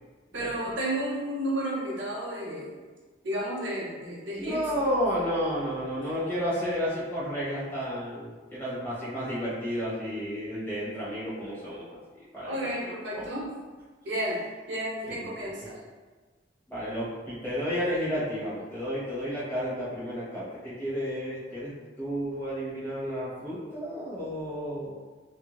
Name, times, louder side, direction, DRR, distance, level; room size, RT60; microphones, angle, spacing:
voice 1, 0.3-2.8 3.2-4.6 12.4-13.5 14.0-14.4 14.7-15.8, right 1 dB, 85° right, -4 dB, 0.7 m, -32 dB
voice 2, 4.4-13.2 15.1-15.5 16.7-21.7 22.0-25.0, equal, 10° left, -10 dB, 1.1 m, -32 dB
2.7 x 2.7 x 2.3 m, 1.3 s
head